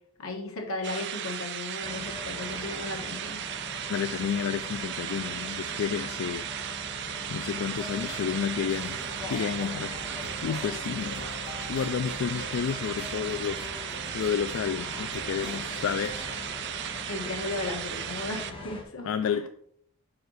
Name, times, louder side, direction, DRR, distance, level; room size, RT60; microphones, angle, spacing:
voice 1, 0.2-3.4 17.1-19.5, left 2 dB, 90° left, 2 dB, 1.4 m, -36 dB
sound 1, 0.8-18.5, right 10 dB, 55° right, 0.4 m, -36 dB
sound 2, 1.8-18.8, left 2 dB, 25° left, 1.2 m, -41 dB
voice 2, 3.9-6.5 7.3-9.0 9.3-9.9 10.4-11.3 11.7-16.3 19.0-19.5, left 7 dB, 70° left, 11 dB, 0.3 m, -31 dB
sound 3, 7.7-16.4, left 1 dB, 50° left, 1.4 m, -45 dB
5.0 x 4.7 x 6.3 m, 0.68 s
head